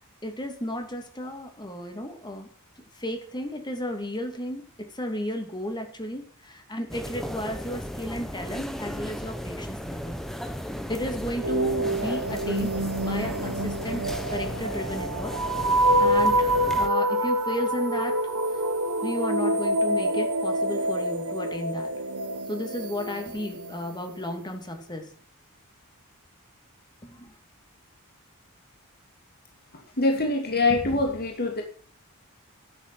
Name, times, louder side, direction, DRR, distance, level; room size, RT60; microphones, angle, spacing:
voice 1, 0.2-2.5 3.0-10.2 10.9-15.4 16.0-18.6 19.0-21.9 22.5-25.1 27.0-27.3, left 1 dB, 20° left, 5 dB, 2.6 m, -34 dB
sound 1, 6.9-16.9, equal, ahead, 1.3 m, -35 dB
sound 2, 11.4-24.2, right 1 dB, 80° right, 1.2 m, -26 dB
voice 2, 29.7-31.6, left 2 dB, 45° left, 2 dB, 2.7 m, -24 dB
11.5 x 8.3 x 7.7 m, 0.43 s
head